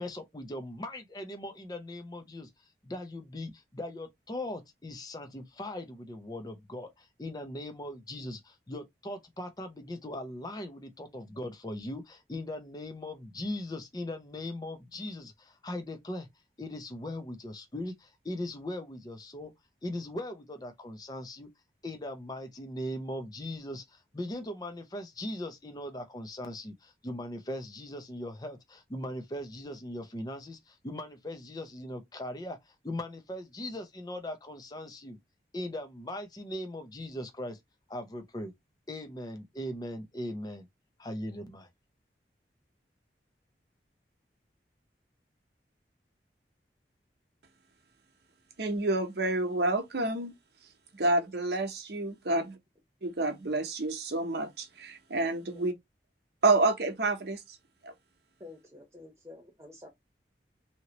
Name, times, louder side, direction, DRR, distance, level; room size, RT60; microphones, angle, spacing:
voice 1, 0.0-2.5 2.8-16.3 16.6-19.5 19.8-21.5 21.8-35.2 35.5-37.6 37.9-38.5 38.9-40.7 41.0-41.7, left 1 dB, 20° left, 0.5 m, -39 dB
voice 2, 48.6-50.3 51.0-52.5 53.0-55.7 56.4-57.4 57.8-57.9, right 2 dB, 75° right, 0.8 m, -28 dB
voice 3, 58.4-59.9, left 2 dB, 15° right, 1.0 m, -50 dB
2.8 x 2.8 x 2.9 m
head